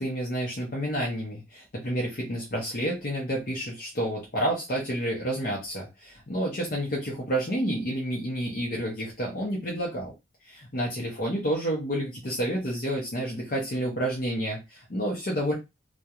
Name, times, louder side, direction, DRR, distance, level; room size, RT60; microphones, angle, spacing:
voice 1, 0.0-10.1 10.4-15.5, right 1 dB, 50° left, -2 dB, 0.7 m, -29 dB
2.3 x 2.2 x 2.8 m, 0.23 s
head